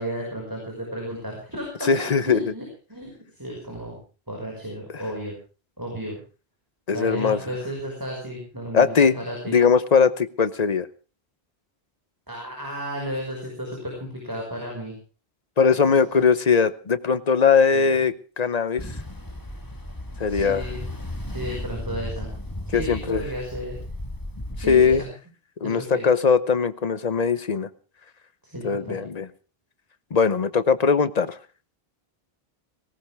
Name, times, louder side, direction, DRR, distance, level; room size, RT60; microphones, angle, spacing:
voice 1, 0.0-2.6 2.9-4.0 4.3-5.3 5.8-6.2 6.9-9.6 12.3-15.0 15.8-15.9 17.7-18.0 20.2-20.9 21.3-22.3 22.7-23.8 24.5-25.1 25.6-26.1 28.4-29.0, equal, 20° right, -1 dB, 5.5 m, -33 dB
voice 2, 1.9-2.4 6.9-7.4 8.7-9.2 9.5-10.9 15.6-18.9 20.2-20.6 22.7-23.2 24.7-25.0 25.6-27.7 28.6-29.2 30.1-31.4, left 5 dB, 45° left, 14 dB, 0.9 m, -20 dB
Ocean, 18.8-25.0, left 1 dB, 20° left, 1.6 m, -35 dB
18.5 x 18.0 x 3.5 m, 0.35 s
omnidirectional pair, 1.0 m